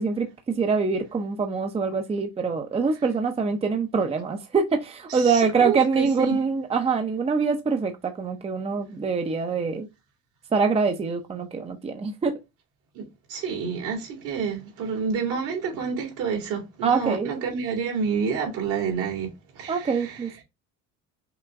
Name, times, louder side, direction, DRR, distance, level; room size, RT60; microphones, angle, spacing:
voice 1, 0.0-9.9 10.5-12.3 16.8-17.3 19.7-20.4, right 5 dB, 20° right, 0.6 m, -24 dB
voice 2, 5.1-6.4 13.0-13.1 13.3-20.2, right 6 dB, 75° right, 2.4 m, -29 dB
5.9 x 2.2 x 3.5 m
cardioid pair, 115°, 32 cm